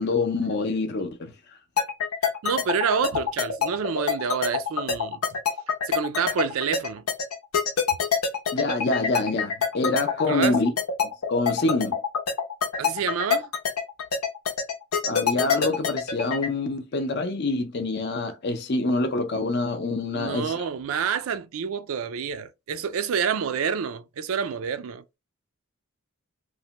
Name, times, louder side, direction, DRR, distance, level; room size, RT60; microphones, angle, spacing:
voice 1, 0.0-1.3 8.5-10.7 11.0-12.0 15.0-20.6, left 2 dB, 50° left, 0.5 m, -26 dB
sound 1, 1.8-16.5, left 6 dB, 90° left, 0.7 m, -25 dB
voice 2, 2.4-5.2 5.8-7.0 10.2-10.6 12.8-13.5 20.1-25.0, right 6 dB, 70° right, 0.4 m, -28 dB
3.2 x 2.1 x 2.8 m
head